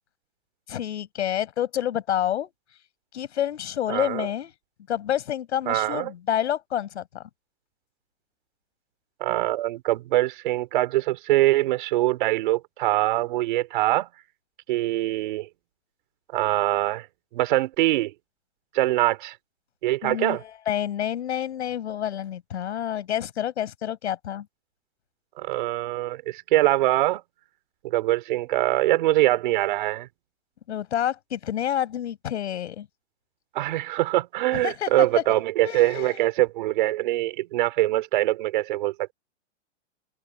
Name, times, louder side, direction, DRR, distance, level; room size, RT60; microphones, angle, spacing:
voice 1, 0.7-2.5 3.1-4.5 4.9-7.2 20.0-24.5 30.7-32.9 34.6-35.2 35.6-36.2, left 10 dB, 70° left, 5.9 m, -28 dB
voice 2, 3.9-4.3 5.7-6.1 9.2-14.1 14.7-15.5 16.3-17.1 17.3-18.1 18.7-19.4 19.8-20.4 25.4-27.2 27.8-30.1 33.5-38.9, right 16 dB, 45° right, 4.3 m, -23 dB
hypercardioid pair, 170°, 35 cm